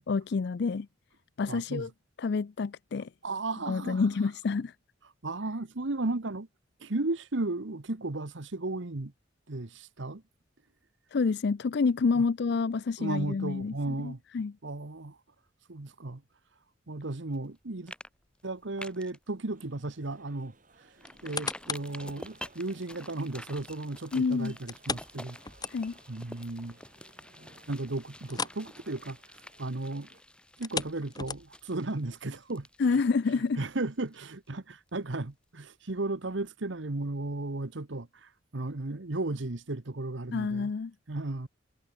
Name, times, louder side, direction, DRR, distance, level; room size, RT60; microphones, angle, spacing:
voice 1, 0.1-0.9 1.4-1.9 2.2-3.1 3.7-4.7 11.1-14.5 24.1-24.5 25.7-26.0 32.8-33.6 40.3-40.9, left 4 dB, 55° left, 0.4 m, -28 dB
voice 2, 1.5-1.9 3.2-4.0 5.2-6.5 6.8-9.1 9.5-10.2 12.1-12.2 13.0-14.2 14.6-15.2 15.7-16.2 16.9-17.9 18.4-20.5 21.2-25.4 26.1-26.8 27.7-29.2 29.6-30.1 30.6-32.7 32.9-33.0 33.6-40.7 41.1-41.5, right 2 dB, 70° right, 1.2 m, -35 dB
sound 1, 17.3-17.6 17.9-18.1 18.4-19.2 19.6-19.7 20.1-20.2 21.0-34.6 34.9-35.0, left 1 dB, 5° left, 6.4 m, -49 dB
sound 2, 19.5-30.2, right 2 dB, 45° right, 7.4 m, -61 dB
sound 3, 21.0-22.0 22.5-22.6 24.7-26.1 26.5-26.6 27.0-27.1 28.2-28.7 28.9-29.2 30.5-31.7 32.4-32.5, left 4 dB, 20° left, 1.7 m, -36 dB
head